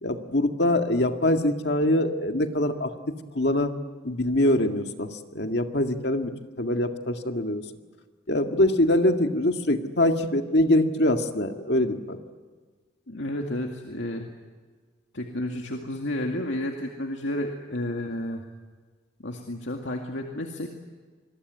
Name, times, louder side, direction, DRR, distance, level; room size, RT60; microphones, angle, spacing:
voice 1, 0.0-2.9 3.3-3.7 4.0-6.3 6.6-7.6 8.3-12.2, left 1 dB, 60° left, 6 dB, 2.0 m, -23 dB
voice 2, 13.1-14.3 15.1-18.4 19.2-20.7, left 1 dB, 85° left, 2 dB, 2.2 m, -31 dB
27.0 x 22.0 x 9.6 m, 1.5 s
head